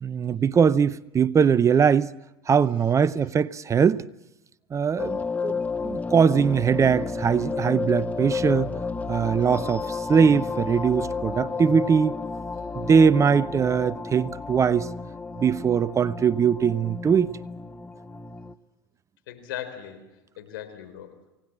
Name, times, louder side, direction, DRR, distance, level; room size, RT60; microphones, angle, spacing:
voice 1, 0.0-2.1 2.5-4.0 4.7-8.7 9.1-12.2 12.8-14.9 15.4-17.3, right 6 dB, 25° right, 0.7 m, -21 dB
sound 1, 5.0-18.5, left 4 dB, 10° left, 1.1 m, -32 dB
voice 2, 19.3-21.3, left 11 dB, 75° left, 4.1 m, -39 dB
28.0 x 18.0 x 7.5 m
hypercardioid pair, 90°, 12 cm